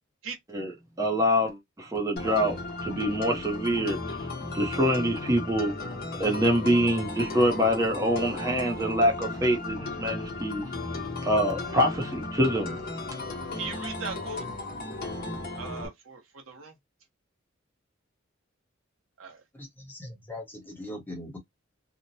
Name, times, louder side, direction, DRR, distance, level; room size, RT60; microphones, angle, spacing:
voice 1, 1.0-4.0 4.5-5.7 6.2-10.6 11.2-12.8, equal, 15° right, 0.7 m, -25 dB
sound 1, 2.2-15.9, left 2 dB, 45° left, 1.0 m, -35 dB
voice 2, 13.5-14.4 15.6-16.2 16.5-16.7 19.2-19.4, right 4 dB, 80° right, 1.0 m, -38 dB
voice 3, 19.5-21.4, left 1 dB, 10° left, 1.0 m, -40 dB
2.9 x 2.1 x 2.6 m
head